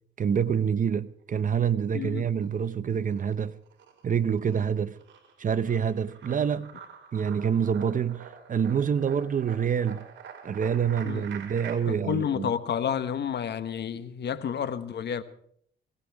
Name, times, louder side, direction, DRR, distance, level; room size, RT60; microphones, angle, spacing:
voice 1, 0.2-3.5 4.0-5.0 5.4-6.7 7.1-10.0 10.4-12.5, right 7 dB, 40° right, 0.9 m, -27 dB
sound 1, 1.8-2.6 2.9-11.7, right 7 dB, 70° right, 4.4 m, -46 dB
voice 2, 1.9-2.3 11.0-11.3 11.9-15.2, left 8 dB, 60° left, 1.3 m, -30 dB
21.5 x 18.0 x 3.6 m
cardioid pair, 90°, 20 cm